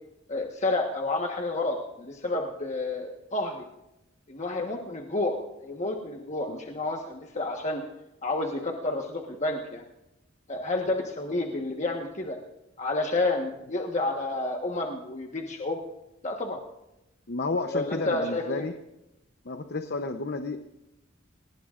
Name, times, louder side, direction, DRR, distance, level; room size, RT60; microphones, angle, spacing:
voice 1, 0.3-3.6 4.3-5.4 5.6-7.8 8.2-9.8 10.5-12.4 12.8-15.8 16.2-16.6 17.7-18.6, left 2 dB, 35° left, 1 dB, 1.3 m, -30 dB
voice 2, 17.3-18.7 19.4-20.6, left 3 dB, 55° left, 7 dB, 0.8 m, -31 dB
28.5 x 19.0 x 2.5 m, 0.92 s
head